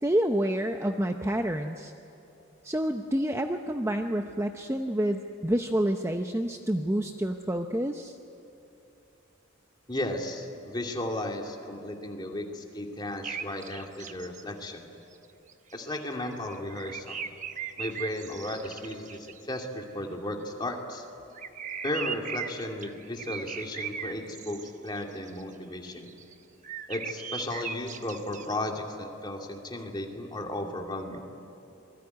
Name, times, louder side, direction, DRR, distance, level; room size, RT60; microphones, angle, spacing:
voice 1, 0.0-1.9 2.6-8.2, right 1 dB, 15° right, 5 dB, 0.7 m, -28 dB
voice 2, 9.9-14.8 15.7-17.2 17.8-21.0 21.8-26.1 26.9-31.3, left 1 dB, 20° left, 1 dB, 2.6 m, -35 dB
sound 1, 13.2-14.4 15.1-15.2 15.5-19.4 21.4-25.4 25.9-26.3 26.6-28.5, right 7 dB, 35° right, 1.0 m, -38 dB
27.0 x 21.0 x 9.6 m, 2.9 s
head